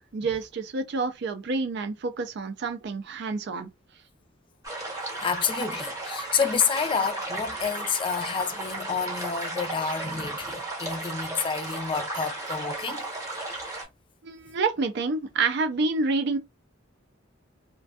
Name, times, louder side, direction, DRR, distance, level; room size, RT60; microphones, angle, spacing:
voice 1, 0.0-3.7 14.2-16.4, right 4 dB, 60° right, 0.4 m, -28 dB
sound 1, 4.6-13.8, right 2 dB, 15° right, 0.8 m, -34 dB
voice 2, 5.2-13.0, left 6 dB, 25° left, 0.3 m, -29 dB
2.5 x 2.2 x 2.3 m
head